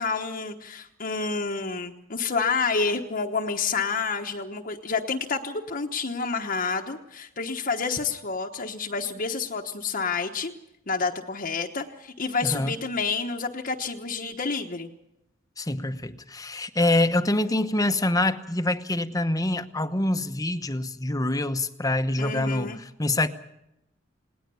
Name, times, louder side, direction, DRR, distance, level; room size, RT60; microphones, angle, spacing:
voice 1, 0.0-10.5 10.9-14.9 22.2-22.8, left 4 dB, 45° left, 1.2 m, -29 dB
voice 2, 12.4-12.7 15.6-23.3, left 2 dB, 20° left, 1.0 m, -25 dB
20.0 x 19.0 x 7.0 m
head